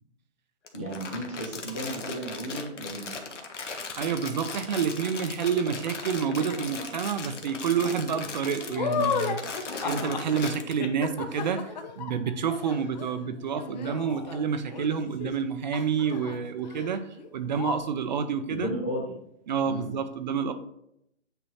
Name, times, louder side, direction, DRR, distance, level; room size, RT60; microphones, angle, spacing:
Crumpling crinkling, 0.6-10.7, left 4 dB, 75° left, 1.3 m, -38 dB
voice 1, 0.7-3.1 18.5-19.1 19.6-19.9, right 1 dB, 10° left, -7 dB, 0.3 m, -34 dB
voice 2, 4.0-18.7 19.5-20.5, right 6 dB, 40° right, 9 dB, 0.6 m, -29 dB
sound 1, 6.4-7.0 7.4-15.5 15.7-16.4 16.6-16.9 17.2-17.3 17.5-17.8, left 6 dB, 35° left, 0.7 m, -34 dB
8.8 x 3.0 x 4.2 m, 0.76 s
hypercardioid pair, 145°, 36 cm